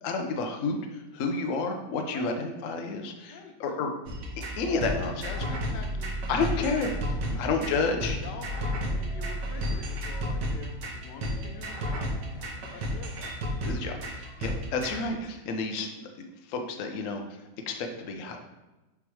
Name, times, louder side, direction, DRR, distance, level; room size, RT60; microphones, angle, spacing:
voice 1, 0.0-3.9 4.6-5.3 6.3-6.9 7.4-8.2 13.6-15.9 16.4-17.4 17.7-18.4, left 4 dB, 60° left, 4 dB, 1.0 m, -30 dB
sound 1, 4.1-15.0, equal, 85° right, 1.7 m, -32 dB
voice 2, 5.2-6.7 7.3-7.8 8.2-13.4 17.9-18.0, left 5 dB, 85° left, 4 dB, 1.4 m, -45 dB
7.0 x 3.2 x 4.7 m, 1.1 s
omnidirectional pair, 1.8 m